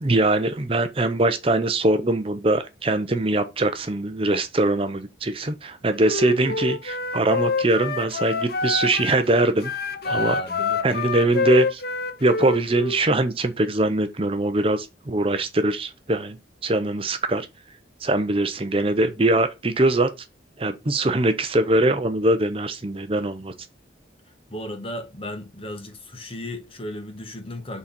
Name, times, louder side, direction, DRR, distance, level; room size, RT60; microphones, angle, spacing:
voice 1, 0.0-9.7 10.1-10.4 10.8-11.8 12.2-16.4 16.6-17.5 18.0-20.1 20.6-23.5, right 2 dB, 30° right, 0.6 m, -22 dB
Wind instrument woodwind instrument, 6.0-9.2 9.6-13.0, left 4 dB, 50° left, 0.7 m, -27 dB
voice 2, 10.0-10.8 24.5-27.8, left 1 dB, 30° left, 1.3 m, -35 dB
6.2 x 4.1 x 5.9 m
head